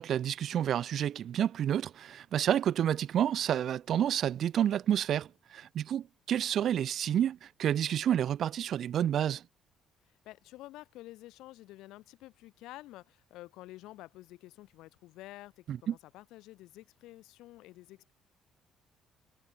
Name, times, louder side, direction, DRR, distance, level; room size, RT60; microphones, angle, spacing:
voice 1, 0.0-9.4 15.7-15.9, right 10 dB, 55° right, 1.0 m, -29 dB
voice 2, 10.1-18.1, left 17 dB, 85° left, 3.3 m, -50 dB
cardioid pair, 135°, 0 cm